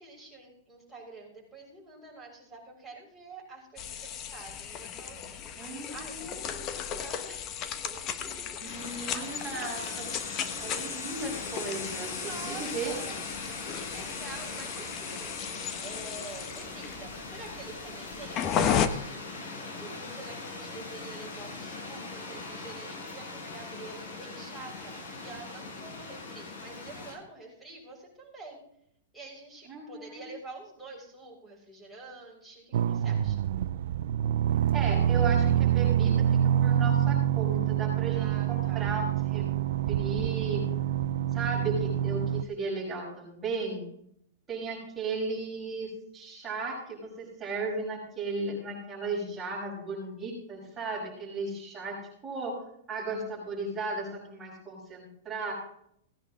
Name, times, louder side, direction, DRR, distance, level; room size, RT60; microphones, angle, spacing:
voice 1, 0.0-8.3 8.6-10.0 12.1-13.2 13.6-15.4 15.8-28.6 29.1-33.4 38.1-38.9, right 2 dB, ahead, -5 dB, 6.6 m, -47 dB
sound 1, 3.8-18.9, left 8 dB, 30° left, 1.2 m, -35 dB
voice 2, 5.6-6.7 8.6-10.1 10.6-12.9 29.7-30.3 34.7-39.1 39.3-39.5 39.9-40.6 41.3-43.9 44.5-52.0 52.2-52.6 52.9-55.5, right 3 dB, 15° right, -6 dB, 6.2 m, -35 dB
sound 2, 8.6-27.1, left 3 dB, 65° left, 6.5 m, -41 dB
sound 3, 32.7-42.4, right 10 dB, 65° right, 0.5 m, -26 dB
18.0 x 10.0 x 3.8 m, 0.70 s
hypercardioid pair, 145°, 0 cm